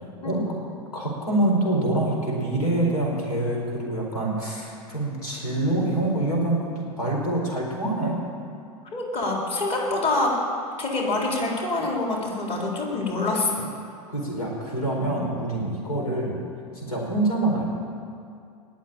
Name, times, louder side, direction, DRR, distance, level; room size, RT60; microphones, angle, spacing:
voice 1, 0.2-0.6 0.9-8.2 14.1-16.4 16.7-17.6, right 2 dB, 85° left, -1 dB, 4.6 m, -25 dB
voice 2, 8.9-10.4 10.8-13.7 15.0-15.1, left 2 dB, 30° left, -2 dB, 4.0 m, -26 dB
20.0 x 7.4 x 8.7 m, 2.4 s
hypercardioid pair, 90°, 19 cm